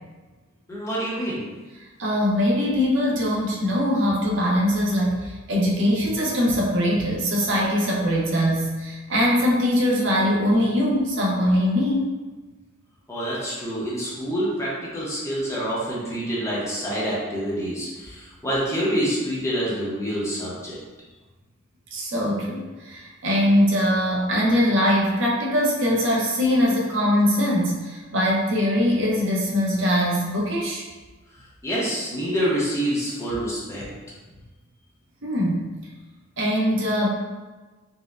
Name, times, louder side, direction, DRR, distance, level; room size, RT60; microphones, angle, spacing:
voice 1, 0.7-1.4 13.1-20.8 31.6-33.8, equal, 15° left, -7 dB, 0.8 m, -27 dB
voice 2, 1.8-12.1 21.9-30.9 35.2-35.7 36.4-37.1, equal, 60° right, -3 dB, 0.7 m, -22 dB
4.3 x 2.1 x 2.4 m, 1.3 s
head